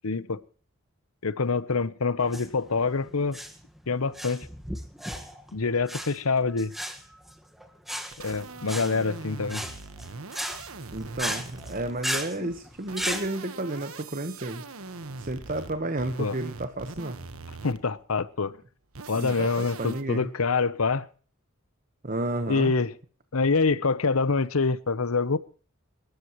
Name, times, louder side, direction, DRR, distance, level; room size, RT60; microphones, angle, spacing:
voice 1, 0.0-0.4 1.2-3.4 3.9-4.5 5.5-6.7 8.2-9.6 12.4-12.5 16.2-16.4 17.6-18.6 19.1-21.1 22.5-22.9 23.3-25.4, left 4 dB, 90° left, 0.9 m, -26 dB
sound 1, 2.2-13.3, equal, ahead, 1.6 m, -36 dB
sound 2, 8.1-12.2 12.7-18.0 18.9-20.0, right 3 dB, 85° right, 1.4 m, -41 dB
voice 2, 10.9-14.6 15.2-17.2 19.2-20.3 22.0-22.7, right 2 dB, 40° right, 1.2 m, -32 dB
27.5 x 13.0 x 3.1 m
head